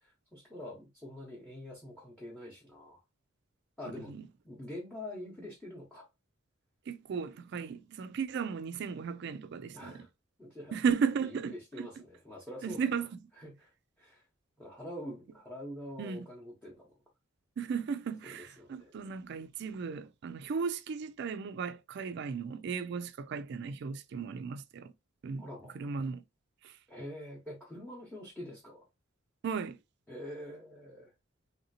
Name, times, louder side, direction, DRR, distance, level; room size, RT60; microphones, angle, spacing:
voice 1, 0.0-3.0 3.8-4.1 4.4-6.1 9.7-10.1 10.4-10.8 11.2-12.8 13.4-13.7 14.0-14.2 14.6-17.0 18.6-19.1 25.4-25.8 26.9-28.9 30.1-31.1, left 1 dB, 5° left, 0.8 m, -45 dB
voice 2, 6.9-10.1 10.7-11.9 12.6-13.2 16.0-16.3 17.6-24.9 25.2-25.5 25.7-26.2 26.6-26.8 29.4-29.8, right 6 dB, 55° right, 0.3 m, -35 dB
3.2 x 2.8 x 2.7 m
head